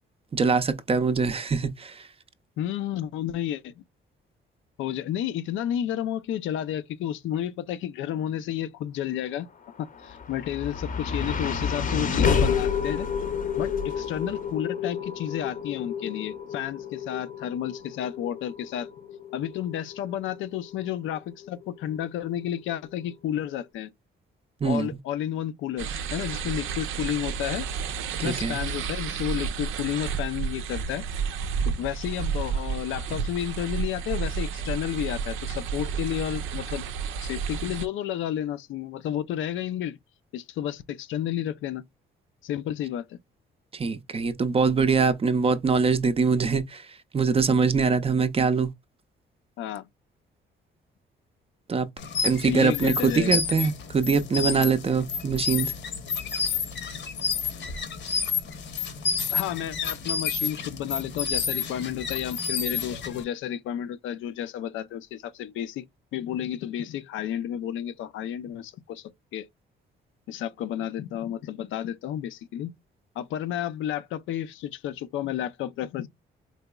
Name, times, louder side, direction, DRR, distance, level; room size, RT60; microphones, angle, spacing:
voice 1, 0.3-2.1 24.6-25.0 28.2-28.6 43.7-48.7 51.7-51.9 52.2-55.7, right 5 dB, 30° right, 0.5 m, -23 dB
voice 2, 2.6-3.8 4.8-9.5 9.8-13.1 13.6-18.9 19.3-23.9 24.6-27.7 28.2-31.0 31.7-36.8 37.2-40.0 40.3-41.8 42.4-43.2 49.6-49.8 52.5-53.4 59.3-65.9 66.1-69.5 70.3-72.7 73.2-76.1, left 11 dB, 80° left, 0.5 m, -31 dB
sound 1, 9.7-22.0, left 6 dB, 40° left, 0.7 m, -30 dB
sound 2, 25.8-37.9, right 6 dB, 90° right, 0.5 m, -31 dB
sound 3, 52.0-63.2, left 5 dB, 65° left, 0.9 m, -30 dB
4.0 x 2.8 x 2.2 m
cardioid pair, 90°, 20 cm